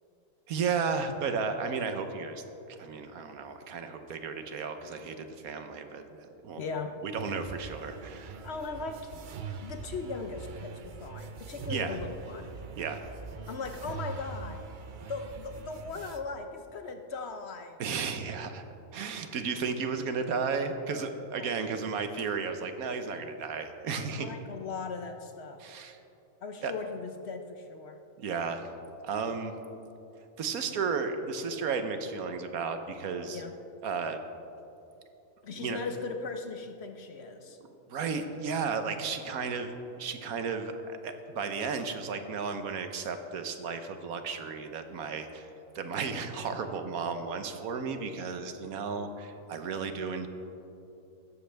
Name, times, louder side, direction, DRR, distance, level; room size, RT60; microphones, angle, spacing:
voice 1, 0.5-2.4 2.7-6.0 6.4-6.6 7.0-8.4 11.7-12.0 12.8-13.0 17.8-18.6 18.9-24.3 25.6-26.0 26.6-26.7 28.2-29.5 30.4-33.4 33.8-34.2 35.5-35.8 37.9-45.5 45.7-50.3, right 5 dB, 80° right, 7 dB, 1.3 m, -34 dB
voice 2, 6.6-7.0 8.4-9.1 9.6-12.5 13.5-14.6 15.1-17.8 21.3-21.5 21.8-22.0 24.0-25.6 26.4-28.0 33.3-33.5 35.4-37.6, left 4 dB, 55° left, 6 dB, 0.9 m, -38 dB
sound 1, 7.2-16.2, right 4 dB, 55° right, 0.5 m, -42 dB
15.5 x 13.0 x 3.4 m, 2.9 s
omnidirectional pair, 1.5 m